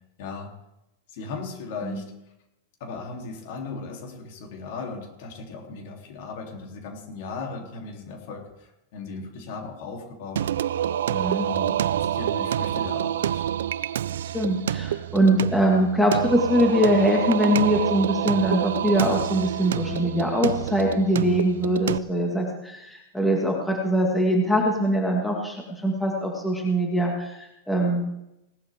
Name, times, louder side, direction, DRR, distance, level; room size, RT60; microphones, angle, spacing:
voice 1, 0.2-0.5 1.1-2.1 2.8-10.5 11.4-13.4, left 4 dB, 55° left, 2 dB, 3.3 m, -37 dB
Singing, 10.4-22.0, right 10 dB, 85° right, 0.4 m, -27 dB
voice 2, 11.1-11.5 14.2-28.2, equal, 5° left, -1 dB, 1.9 m, -23 dB
18.5 x 12.0 x 3.7 m, 0.89 s
supercardioid pair, 160°, 0 cm